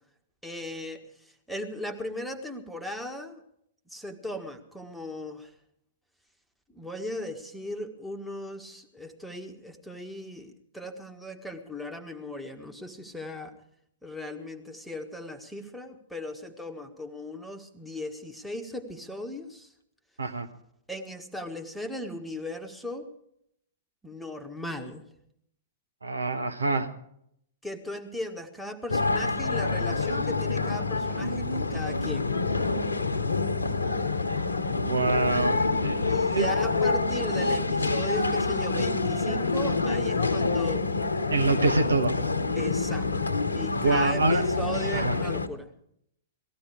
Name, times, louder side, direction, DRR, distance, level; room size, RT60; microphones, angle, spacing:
voice 1, 0.4-3.4 3.9-5.5 6.7-13.5 14.0-19.7 20.9-23.1 24.0-25.0 27.6-32.3 36.1-40.9 42.5-45.7, left 1 dB, ahead, 5 dB, 1.6 m, -38 dB
voice 2, 26.0-26.9 34.8-36.5 41.3-42.2 43.8-44.4 44.9-45.2, right 3 dB, 80° right, 8 dB, 1.4 m, -26 dB
sound 1, 28.9-45.5, left 3 dB, 80° left, 1.0 m, -27 dB
19.0 x 15.0 x 4.9 m, 0.73 s
figure-of-eight pair, 110°, 0 cm